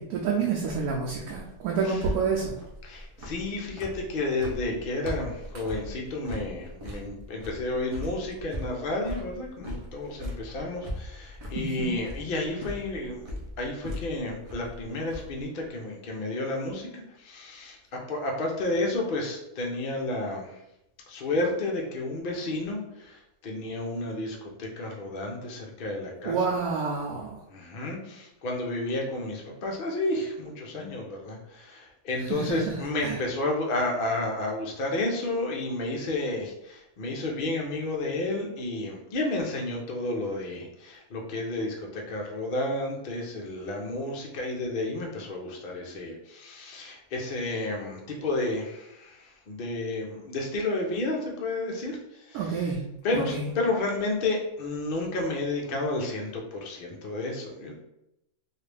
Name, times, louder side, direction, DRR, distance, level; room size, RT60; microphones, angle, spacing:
voice 1, 0.0-2.6 11.5-12.0 26.2-27.4 32.2-33.2 52.3-52.8 53.1-53.5, right 5 dB, 75° right, -2 dB, 1.0 m, -29 dB
sound 1, 0.6-15.5, left 1 dB, 55° right, 0.4 m, -40 dB
voice 2, 2.8-13.2 13.6-20.6 21.1-26.6 27.5-52.7 53.0-57.8, left 2 dB, 70° left, 0 dB, 0.5 m, -31 dB
3.1 x 2.4 x 3.3 m, 0.86 s
omnidirectional pair, 1.7 m